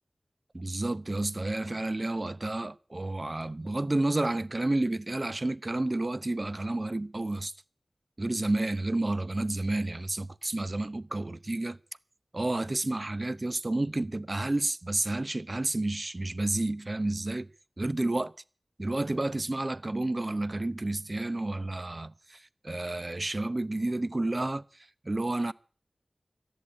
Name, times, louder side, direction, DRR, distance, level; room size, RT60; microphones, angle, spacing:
voice 1, 0.5-7.5 8.2-11.8 12.3-17.5 17.8-18.3 18.8-25.5, right 2 dB, 40° right, 0.8 m, -30 dB
14.5 x 10.5 x 8.7 m
cardioid pair, 40°, 0 cm